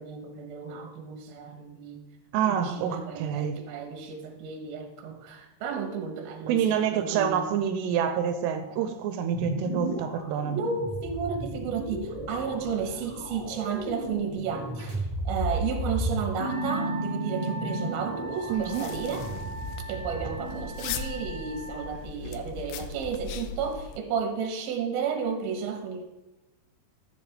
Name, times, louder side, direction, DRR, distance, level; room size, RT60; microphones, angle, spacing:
voice 1, 0.0-2.0 2.4-7.5 10.5-19.3 19.9-26.0, right 6 dB, 70° right, 5 dB, 2.8 m, -33 dB
voice 2, 2.3-3.6 6.5-10.6 18.5-18.9, right 8 dB, 90° right, 7 dB, 2.8 m, -27 dB
sound 1, 9.3-20.6, right 1 dB, 20° right, 1.5 m, -34 dB
Wind instrument woodwind instrument, 16.4-22.0, right 3 dB, 10° left, 3.6 m, -41 dB
sound 2, 18.6-24.0, left 6 dB, 80° left, 2.5 m, -39 dB
13.5 x 7.6 x 3.4 m, 1.1 s
omnidirectional pair, 4.8 m